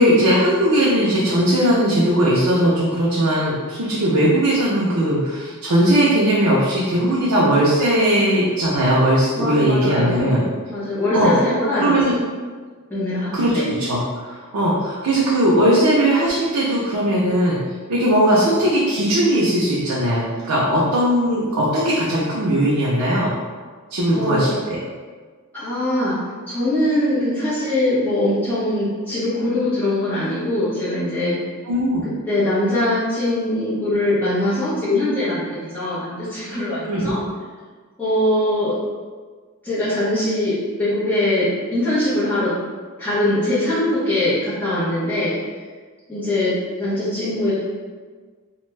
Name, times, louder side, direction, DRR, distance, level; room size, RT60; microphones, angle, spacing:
voice 1, 0.0-10.4 11.1-11.3 11.8-12.1 13.3-14.3 14.5-17.6 17.9-23.3 23.9-24.8 31.7-32.1 36.8-37.2, right 1 dB, 85° right, -6 dB, 0.5 m, -18 dB
voice 2, 9.4-10.3 10.7-12.1 12.9-13.7 24.1-24.5 25.5-31.4 32.0-37.2 38.0-38.7 39.6-42.5 43.0-45.3 46.1-47.6, left 1 dB, 10° left, -15 dB, 0.9 m, -22 dB
2.5 x 2.2 x 3.1 m, 1.5 s
head